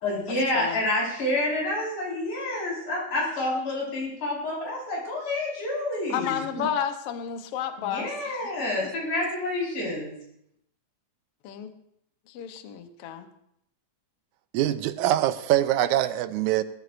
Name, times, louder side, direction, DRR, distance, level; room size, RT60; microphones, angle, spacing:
voice 1, 0.0-6.4 7.8-10.2, left 1 dB, 90° left, -4 dB, 6.3 m, -28 dB
voice 2, 6.1-8.7 11.4-11.7 12.3-13.3, left 8 dB, 65° left, 8 dB, 1.7 m, -32 dB
voice 3, 14.5-16.6, right 13 dB, 85° right, 12 dB, 2.1 m, -23 dB
20.0 x 13.5 x 2.6 m, 0.76 s
omnidirectional pair, 3.4 m